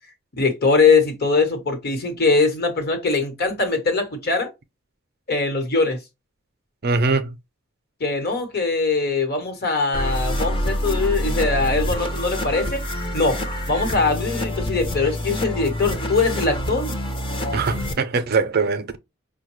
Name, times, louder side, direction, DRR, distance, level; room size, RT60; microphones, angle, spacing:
voice 1, 0.4-4.5 5.3-6.0 8.0-12.8 13.1-13.4 13.7-17.0, left 4 dB, 50° left, 1.1 m, -21 dB
voice 2, 6.8-7.4 17.5-19.0, right 4 dB, 50° right, 0.5 m, -22 dB
sound 1, 9.9-17.9, equal, 25° left, 0.6 m, -26 dB
5.3 x 2.2 x 3.0 m
head